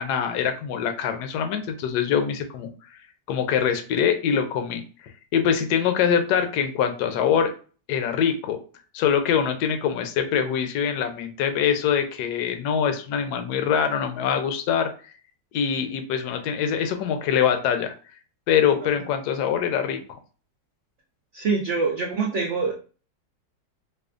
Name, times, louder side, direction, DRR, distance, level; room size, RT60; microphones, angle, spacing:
voice 1, 0.0-2.7 3.3-4.8 5.3-7.5 7.9-8.6 8.9-14.9 15.5-17.9 18.5-20.0, left 8 dB, 70° left, 7 dB, 1.1 m, -23 dB
voice 2, 21.3-22.7, right 4 dB, 80° right, 1 dB, 0.6 m, -24 dB
4.9 x 2.3 x 2.4 m, 0.38 s
omnidirectional pair, 1.9 m